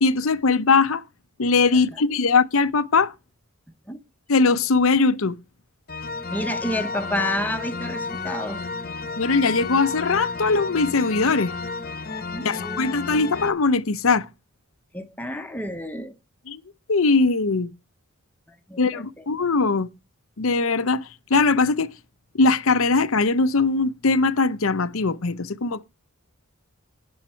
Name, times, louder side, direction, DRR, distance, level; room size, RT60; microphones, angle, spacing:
voice 1, 0.0-1.0 1.4-3.1 4.3-5.4 9.2-11.5 12.4-14.3 16.5-16.6 16.9-17.7 18.8-19.9 20.4-21.9 22.3-25.8, left 4 dB, 70° left, 0.8 m, -21 dB
sound 1, 5.9-13.5, left 4 dB, 45° left, 1.1 m, -31 dB
voice 2, 6.3-8.6 12.3-12.8 14.9-16.1 18.5-19.3, left 1 dB, 10° left, 1.1 m, -30 dB
12.0 x 8.7 x 4.5 m
head